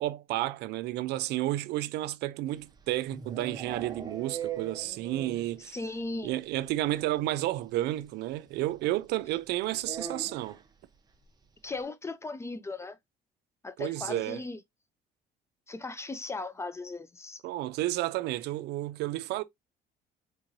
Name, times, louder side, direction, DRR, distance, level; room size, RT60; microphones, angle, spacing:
voice 1, 0.0-5.8 6.2-10.6 13.8-14.4 17.4-19.4, right 16 dB, 80° right, 0.4 m, -31 dB
sound 1, 2.6-5.6 5.9-6.0 6.3-6.4 6.6-6.8 8.0-8.1 9.8-10.7, right 6 dB, 25° right, 0.7 m, -40 dB
voice 2, 5.6-6.3 11.6-13.0 13.6-14.6 15.7-17.4, left 3 dB, 15° left, 0.3 m, -37 dB
3.6 x 3.1 x 2.5 m
cardioid pair, 110°, 17 cm